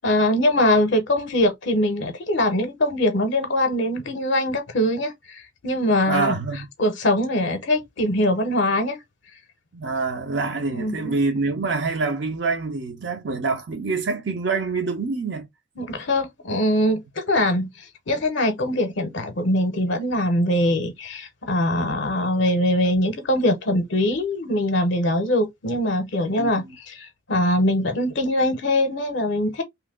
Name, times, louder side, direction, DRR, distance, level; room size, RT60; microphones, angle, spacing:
voice 1, 0.0-6.3 6.8-9.0 10.7-11.1 15.8-29.6, left 1 dB, 60° left, 0.6 m, -22 dB
voice 2, 6.0-6.6 9.7-15.5 26.4-26.5, right 4 dB, 55° right, 0.6 m, -26 dB
2.8 x 2.1 x 3.4 m
head